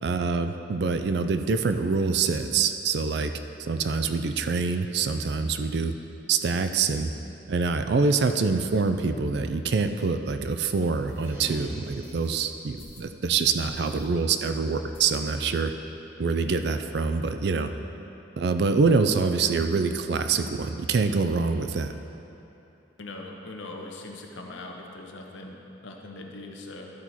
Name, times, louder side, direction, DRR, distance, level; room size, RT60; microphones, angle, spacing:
voice 1, 0.0-3.3 3.6-5.9 6.3-7.1 7.5-15.7 16.2-17.7 18.4-21.9, right 4 dB, 55° right, 8 dB, 0.4 m, -25 dB
sound 1, 11.1-11.3 12.0-12.3 12.7-13.1 13.6-14.1 14.4-14.5 14.9-15.6 15.9-16.0 16.3-16.4 16.6-17.2, left 2 dB, 30° left, 1.0 m, -53 dB
sound 2, 11.1-12.7, right 1 dB, 10° right, 0.9 m, -42 dB
voice 2, 23.0-26.9, left 2 dB, 75° left, 1 dB, 0.9 m, -41 dB
12.0 x 4.5 x 4.2 m, 2.9 s
head